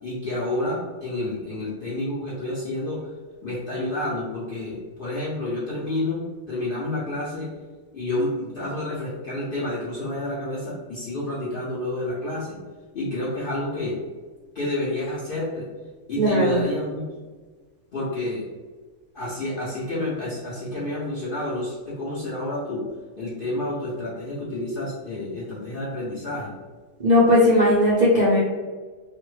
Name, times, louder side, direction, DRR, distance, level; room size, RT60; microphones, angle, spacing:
voice 1, 0.0-3.1 3.4-7.5 7.9-12.6 12.9-14.0 14.5-15.7 16.1-17.1 17.9-18.5 19.1-22.8 23.2-26.5, left 1 dB, 65° left, -6 dB, 0.5 m, -29 dB
voice 2, 16.2-16.6 27.0-28.4, left 1 dB, 75° right, -6 dB, 0.4 m, -17 dB
3.2 x 2.1 x 3.1 m, 1.4 s
omnidirectional pair, 1.6 m